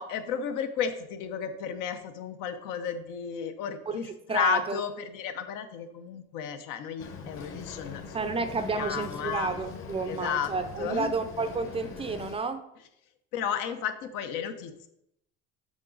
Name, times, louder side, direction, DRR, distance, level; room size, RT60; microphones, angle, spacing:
voice 1, 0.0-8.2 8.7-9.5 10.0-10.5 10.8-11.1 13.3-14.9, left 8 dB, 85° left, 8 dB, 0.9 m, -33 dB
voice 2, 4.3-4.8 8.1-12.6, right 4 dB, 20° right, 9 dB, 0.4 m, -31 dB
Boat Water vehicle, 7.0-12.4, left 5 dB, 45° left, 1.1 m, -42 dB
7.4 x 6.1 x 3.9 m, 0.82 s
cardioid pair, 145°, 31 cm